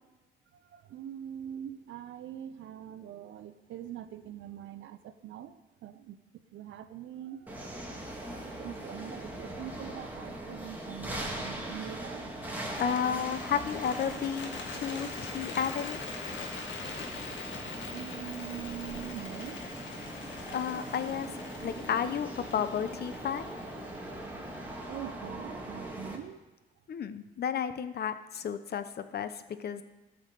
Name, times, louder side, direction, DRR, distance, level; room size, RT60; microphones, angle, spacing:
voice 1, 0.5-7.7 8.4-12.4 17.6-19.6 24.9-26.4, right 10 dB, 75° right, 11 dB, 0.6 m, -43 dB
sound 1, 7.5-26.2, right 1 dB, 10° right, 2.1 m, -41 dB
Bird, 12.7-24.9, left 4 dB, 70° left, 1.9 m, -43 dB
voice 2, 12.8-16.0 20.5-21.4 21.6-23.5 26.9-29.8, left 8 dB, 55° left, 11 dB, 0.8 m, -32 dB
14.0 x 5.7 x 6.7 m, 1.1 s
cardioid pair, 90°, 20 cm